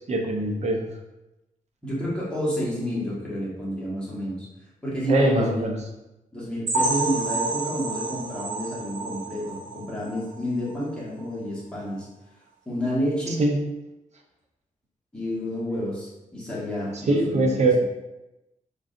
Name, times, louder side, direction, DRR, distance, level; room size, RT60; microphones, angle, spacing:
voice 1, 0.1-0.9 5.1-5.8 13.4-13.6 17.1-17.8, right 2 dB, 55° right, 2 dB, 0.7 m, -22 dB
voice 2, 1.8-4.5 4.8-5.8 6.3-12.1 12.6-13.4 15.1-17.7, equal, 5° left, -7 dB, 1.5 m, -30 dB
sound 1, 6.7-10.3 10.7-10.8 11.2-11.3 11.8-11.9, right 3 dB, 80° right, 1.1 m, -29 dB
3.8 x 3.7 x 2.6 m, 0.96 s
wide cardioid pair, 110°, 14 cm